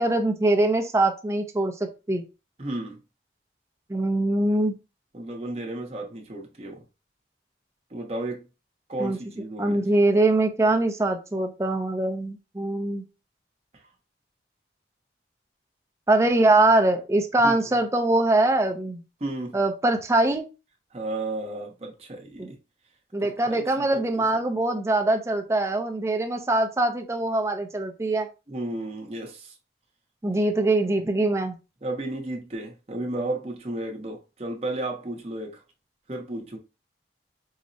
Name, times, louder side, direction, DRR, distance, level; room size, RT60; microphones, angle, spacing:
voice 1, 0.0-1.7 2.1-2.2 3.9-4.7 9.0-9.2 9.6-13.0 16.1-19.0 19.5-20.5 22.4-22.5 23.1-28.3 30.2-31.6, right 2 dB, 15° right, 0.4 m, -23 dB
voice 2, 2.6-3.0 5.1-6.8 7.9-8.5 8.9-9.9 17.4-17.6 19.2-19.6 20.9-22.6 23.2-24.4 28.5-29.5 31.8-35.6 36.1-36.6, right 2 dB, 35° right, 0.8 m, -33 dB
4.7 x 2.0 x 2.6 m
head